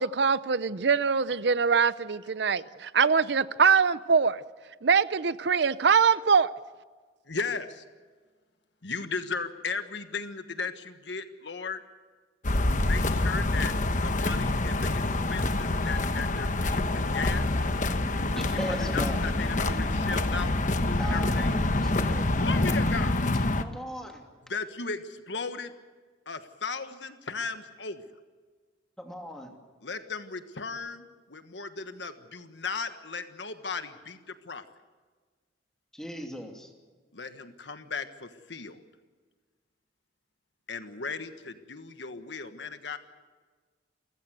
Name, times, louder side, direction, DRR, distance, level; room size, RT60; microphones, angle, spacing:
voice 1, 0.0-4.4 4.8-6.5, right 5 dB, 60° right, 16 dB, 0.6 m, -23 dB
voice 2, 7.3-7.8 8.8-11.8 12.8-13.7 14.0-17.5 18.6-20.6 20.8-21.5 22.4-23.1 24.5-25.7 26.3-28.0 29.8-34.6 37.1-38.8 40.7-43.0, left 4 dB, 65° left, 9 dB, 1.4 m, -36 dB
sound 1, 12.4-23.6, left 2 dB, 40° left, 1.1 m, -26 dB
voice 3, 18.3-19.2 21.0-22.9 23.6-24.2 29.0-29.5 35.9-36.7, equal, 5° left, 2 dB, 2.7 m, -38 dB
28.5 x 15.5 x 8.0 m, 1.5 s
head